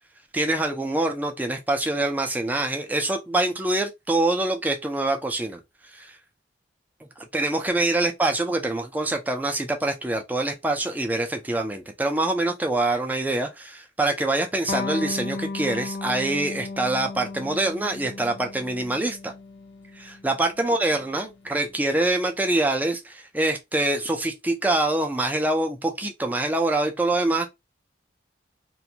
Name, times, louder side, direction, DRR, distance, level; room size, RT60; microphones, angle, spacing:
voice 1, 0.3-5.6 5.9-6.2 7.2-19.3 20.0-27.5, right 2 dB, 10° right, 0.4 m, -25 dB
Electric guitar, 14.7-21.8, left 3 dB, 85° left, 0.7 m, -35 dB
2.5 x 2.2 x 2.8 m
head